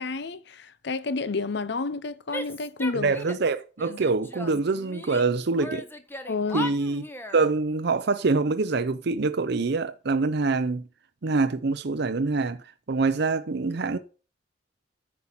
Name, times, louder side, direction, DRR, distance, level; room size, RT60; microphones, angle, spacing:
voice 1, 0.0-3.1 3.9-4.0 6.3-6.7, left 3 dB, 60° left, 0.7 m, -30 dB
Female speech woman speaking / Yell, 2.3-3.5 3.8-5.3 5.6-7.4, left 1 dB, 10° left, 1.0 m, -37 dB
voice 2, 3.0-5.8 6.5-7.0 7.3-10.8 11.2-12.6 12.9-14.0, right 3 dB, 60° right, 0.6 m, -25 dB
9.7 x 5.6 x 6.0 m
head